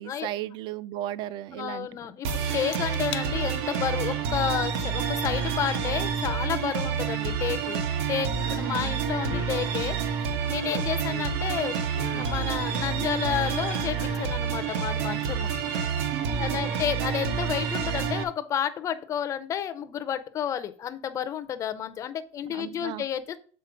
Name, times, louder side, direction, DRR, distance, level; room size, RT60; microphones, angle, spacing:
voice 1, 0.0-1.9 8.5-9.0 16.1-16.7 22.5-23.0, right 12 dB, 35° right, 0.3 m, -35 dB
voice 2, 1.5-7.8 8.1-10.0 10.5-11.8 12.1-15.5 16.3-23.4, left 9 dB, 25° left, 0.5 m, -31 dB
sound 1, 2.2-18.2, right 7 dB, 85° right, 1.3 m, -28 dB
sound 2, 2.7-3.3 3.7-4.1 5.7-5.8 8.4-8.9 9.2-9.6 10.3-11.4 11.9-13.5 13.9-14.4 14.8-14.9, left 13 dB, 65° left, 0.6 m, -40 dB
6.8 x 4.1 x 5.1 m
cardioid pair, 180°, 14 cm